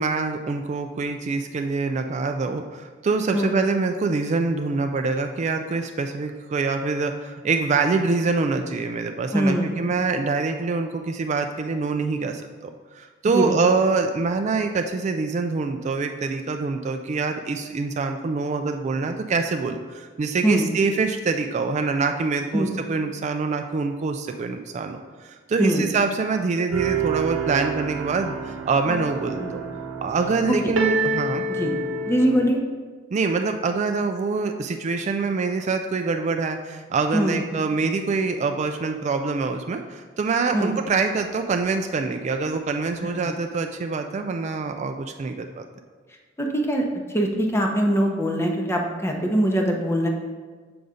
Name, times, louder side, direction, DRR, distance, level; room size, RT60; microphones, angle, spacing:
voice 1, 0.0-29.6 30.0-31.5 33.1-45.7, right 4 dB, 35° right, 6 dB, 0.3 m, -25 dB
voice 2, 9.3-9.8 13.3-13.5 20.4-20.7 22.5-22.7 25.6-25.8 29.4-29.5 30.5-30.6 31.6-31.7 32.1-32.6 37.1-37.4 40.5-40.7 43.2-43.3 46.4-46.8 47.1-50.1, equal, 15° left, 2 dB, 0.7 m, -22 dB
sound 1, 26.7-32.5, right 3 dB, 80° right, 0.8 m, -27 dB
6.8 x 3.9 x 4.9 m, 1.5 s
head